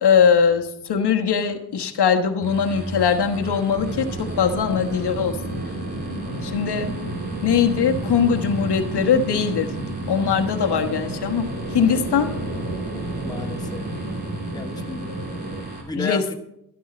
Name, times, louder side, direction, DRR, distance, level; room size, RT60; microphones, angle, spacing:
voice 1, 0.0-5.4 6.4-6.9 7.4-9.7 10.1-12.3 16.0-16.3, left 7 dB, 80° left, 4 dB, 1.3 m, -21 dB
sound 1, 2.4-15.8, right 2 dB, 25° right, 3.3 m, -36 dB
sound 2, 3.7-15.6, right 1 dB, 75° right, 2.8 m, -31 dB
voice 2, 13.2-13.9 14.5-15.1 15.8-16.3, left 3 dB, 10° left, 5 dB, 0.9 m, -32 dB
13.0 x 12.0 x 4.3 m, 0.79 s
wide cardioid pair, 135°, 40 cm